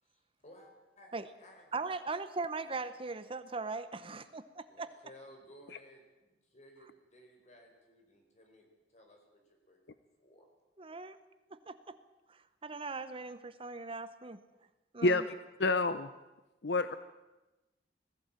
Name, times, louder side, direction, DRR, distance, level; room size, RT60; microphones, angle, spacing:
voice 1, 0.0-1.7 4.7-8.6 8.9-9.4 9.7-9.8 10.2-10.5, equal, 40° left, 2 dB, 4.9 m, -58 dB
voice 2, 1.7-4.9 10.8-11.2 11.7-12.0 12.3-14.4 14.9-15.2, right 3 dB, 30° right, 12 dB, 0.9 m, -39 dB
voice 3, 15.6-16.1 16.6-16.9, left 2 dB, 70° left, 12 dB, 0.7 m, -27 dB
20.0 x 15.0 x 8.9 m, 1.1 s
head